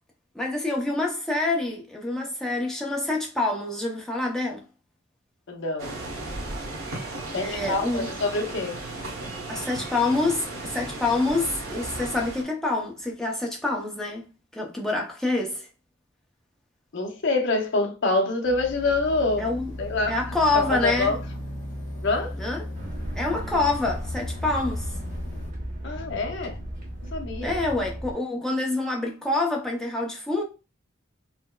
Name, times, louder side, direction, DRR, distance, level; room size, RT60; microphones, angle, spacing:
voice 1, 0.3-4.6 7.3-8.1 9.5-14.3 14.5-15.7 19.4-19.7 20.1-21.2 22.4-22.6 23.1-24.9 27.4-30.4, left 2 dB, 5° left, 0.6 m, -26 dB
voice 2, 5.5-6.0 7.3-8.8 16.9-19.5 19.8-20.2 20.5-21.2 22.0-22.4 25.8-26.6 27.1-27.6, left 3 dB, 60° left, 0.6 m, -26 dB
sound 1, 5.8-12.4, right 2 dB, 80° right, 1.0 m, -35 dB
sound 2, 18.4-25.5, left 1 dB, 25° left, 1.7 m, -36 dB
sound 3, 22.7-28.1, equal, 45° right, 0.9 m, -35 dB
4.1 x 2.0 x 2.3 m
head